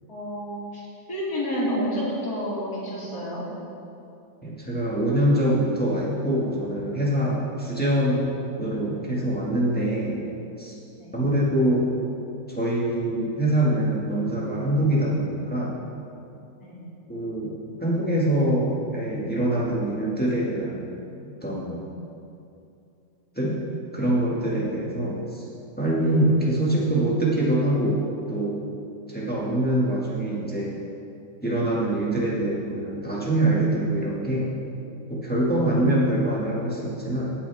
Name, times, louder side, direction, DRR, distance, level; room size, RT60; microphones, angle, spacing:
voice 1, 0.1-0.8 1.1-3.5 11.0-11.2 16.6-16.8, equal, 50° left, -8 dB, 3.0 m, -29 dB
voice 2, 4.4-8.3 8.6-10.2 10.6-10.8 11.1-11.9 12.5-15.8 17.1-17.5 17.8-20.9 21.4-21.8 23.3-23.6 23.9-25.5 25.8-28.0 28.3-28.6 29.1-30.7 31.4-34.5 35.1-37.3, right 1 dB, 5° left, -6 dB, 1.6 m, -24 dB
17.5 x 6.9 x 3.5 m, 2.6 s
omnidirectional pair, 2.1 m